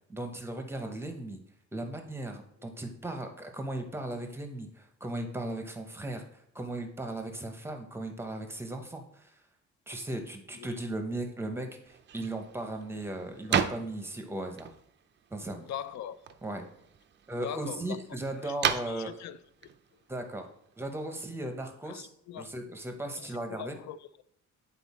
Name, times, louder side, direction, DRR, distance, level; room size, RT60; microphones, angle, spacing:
voice 1, 0.1-1.4 1.7-6.2 6.5-9.3 9.9-14.7 15.3-15.6 16.4-16.6 17.3-19.1 20.1-20.4 20.8-22.1 22.4-23.8, right 1 dB, 10° right, 0.7 m, -37 dB
sound 1, 11.9-21.0, right 8 dB, 35° right, 0.4 m, -37 dB
voice 2, 15.6-16.4 17.4-18.0 18.3-19.4 21.8-22.5 23.1-24.2, left 9 dB, 60° left, 0.5 m, -42 dB
9.1 x 4.2 x 4.1 m
cardioid pair, 170°, 31 cm